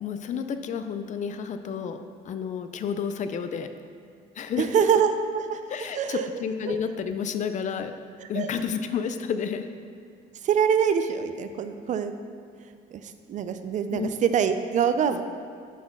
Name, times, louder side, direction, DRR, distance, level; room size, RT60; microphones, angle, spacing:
voice 1, 0.0-2.0 2.3-3.7 4.4-4.9 5.7-7.9 8.3-9.7 13.9-14.1, left 7 dB, 45° left, 9 dB, 0.4 m, -30 dB
voice 2, 4.6-5.6 5.9-6.3 6.7-6.8 8.2-8.5 10.4-12.1 12.9-15.2, right 7 dB, 45° right, 9 dB, 0.4 m, -25 dB
5.8 x 4.4 x 5.8 m, 2.4 s
cardioid pair, 110°, 17 cm